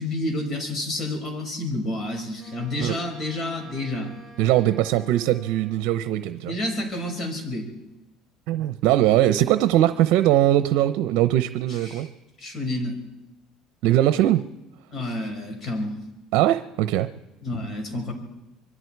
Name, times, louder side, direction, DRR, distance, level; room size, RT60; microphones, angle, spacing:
voice 1, 0.0-4.1 6.4-7.7 11.7-12.1 12.4-13.0 14.9-16.0 17.4-18.1, left 1 dB, 40° left, 3 dB, 6.1 m, -29 dB
Wind instrument woodwind instrument, 2.4-5.9, right 3 dB, 5° right, 6.8 m, -49 dB
voice 2, 4.4-6.6 8.5-12.1 13.8-14.4 16.3-17.1, right 13 dB, 70° right, 11 dB, 0.8 m, -21 dB
26.0 x 23.0 x 4.7 m, 0.98 s
supercardioid pair, 105°, 0 cm